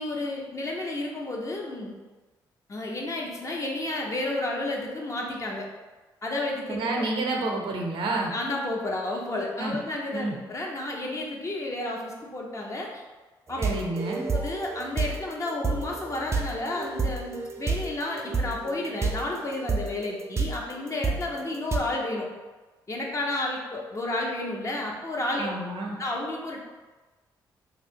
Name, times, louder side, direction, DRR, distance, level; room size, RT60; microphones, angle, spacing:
voice 1, 0.0-1.9 2.7-5.7 6.2-7.0 8.1-13.0 13.5-13.6 14.3-22.3 22.9-25.5 26.0-26.6, left 2 dB, 35° left, -1 dB, 0.7 m, -31 dB
voice 2, 6.7-8.3 9.6-9.8 10.1-10.4 13.6-14.3 25.4-26.0, right 2 dB, 75° right, 1 dB, 0.6 m, -29 dB
sound 1, 13.5-21.8, right 4 dB, 30° right, 0.4 m, -30 dB
2.7 x 2.3 x 3.6 m, 1.2 s
cardioid pair, 65°, 9 cm